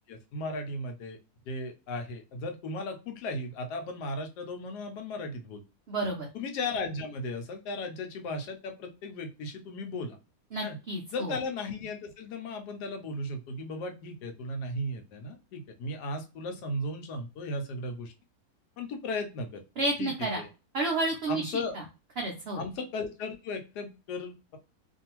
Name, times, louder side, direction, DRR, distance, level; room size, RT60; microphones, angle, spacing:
voice 1, 0.1-1.2 1.5-5.6 6.3-10.2 10.6-10.8 11.1-18.1 18.8-19.6 20.0-20.5 21.3-21.8 22.6-24.6, left 2 dB, 85° left, 6 dB, 1.2 m, -36 dB
voice 2, 5.9-6.3 10.5-11.4 19.8-20.4 20.7-21.8 22.2-22.6, right 2 dB, 80° right, 1 dB, 0.5 m, -31 dB
2.6 x 2.6 x 2.9 m, 0.31 s
omnidirectional pair, 1.7 m